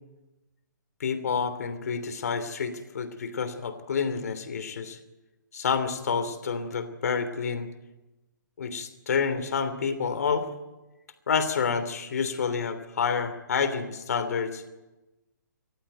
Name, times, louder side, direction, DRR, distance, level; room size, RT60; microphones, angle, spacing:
voice 1, 1.0-5.0 5.5-7.7 8.6-10.5 11.3-14.6, left 6 dB, 55° left, 10 dB, 3.0 m, -28 dB
28.0 x 14.5 x 9.1 m, 1.1 s
figure-of-eight pair, 130°, 10 cm